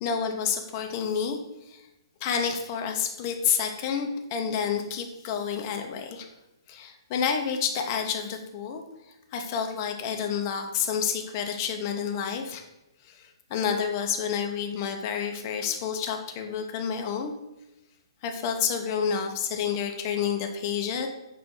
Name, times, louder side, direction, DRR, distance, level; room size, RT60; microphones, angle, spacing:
voice 1, 0.0-1.4 1.7-1.8 2.2-6.3 6.7-12.6 13.0-17.3 18.2-21.1, left 7 dB, 35° left, 4 dB, 0.6 m, -29 dB
5.5 x 2.1 x 4.5 m, 0.95 s
figure-of-eight pair, 120°, 3 cm